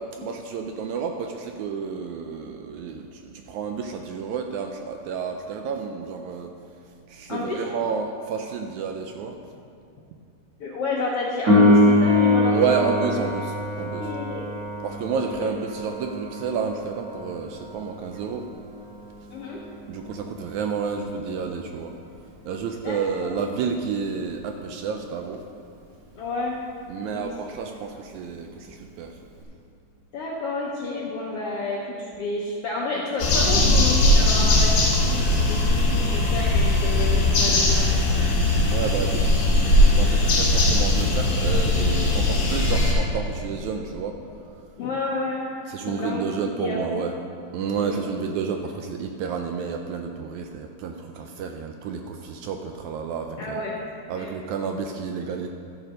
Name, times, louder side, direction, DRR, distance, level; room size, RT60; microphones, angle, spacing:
voice 1, 0.0-6.5 7.1-9.4 12.5-14.1 14.8-18.5 19.9-21.9 22.5-25.4 26.9-29.2 37.3-37.8 38.5-44.2 44.5-44.7 45.7-47.1 47.5-53.6 54.1-55.5, right 6 dB, 80° right, 4 dB, 1.8 m, -30 dB
voice 2, 7.3-7.6 10.6-12.8 13.8-14.4 15.4-15.5 19.3-19.6 22.8-23.3 26.2-26.6 27.1-27.3 30.1-38.3 44.8-45.4 45.9-46.2 46.6-47.0 47.8-48.1 53.4-53.8 54.1-54.3, left 3 dB, 75° left, -3 dB, 1.4 m, -30 dB
Piano, 11.5-21.9 29.4-29.5, left 1 dB, 40° right, 1.5 m, -24 dB
sound 1, 33.2-42.9, left 2 dB, 50° left, 2.2 m, -19 dB
12.5 x 6.5 x 5.1 m, 2.4 s
omnidirectional pair, 3.7 m